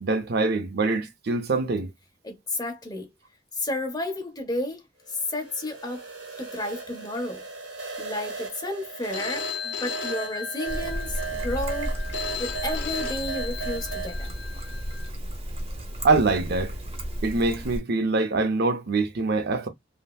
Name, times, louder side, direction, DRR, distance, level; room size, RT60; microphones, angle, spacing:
voice 1, 0.0-1.9 16.0-16.7 17.2-19.7, right 3 dB, 60° right, 0.5 m, -24 dB
voice 2, 2.2-3.1 3.5-6.1 6.4-7.4 8.0-14.3, left 1 dB, 20° left, 0.9 m, -32 dB
sound 1, 5.1-14.2, right 6 dB, 90° right, 1.2 m, -37 dB
Telephone, 9.1-15.1, left 8 dB, 80° left, 0.5 m, -36 dB
Trickle dribble, 10.7-17.8, equal, 30° right, 0.8 m, -33 dB
3.4 x 2.1 x 2.3 m
head